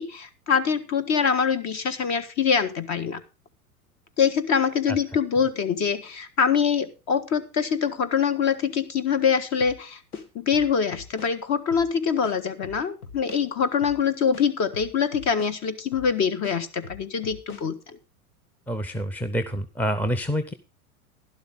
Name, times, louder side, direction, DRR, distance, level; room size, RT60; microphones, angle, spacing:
voice 1, 0.0-3.2 4.2-10.0 10.3-18.0, left 6 dB, 35° left, 13 dB, 1.6 m, -24 dB
sound 1, 9.6-9.8 10.1-11.3 11.7-11.9 12.2-13.4 13.8-14.0 14.3-15.5 15.9-16.1 16.4-17.6, left 5 dB, 80° left, 1.9 m, -42 dB
voice 2, 18.7-20.5, equal, 5° left, 10 dB, 0.8 m, -27 dB
12.0 x 11.5 x 3.7 m, 0.30 s
hypercardioid pair, 95°, 44 cm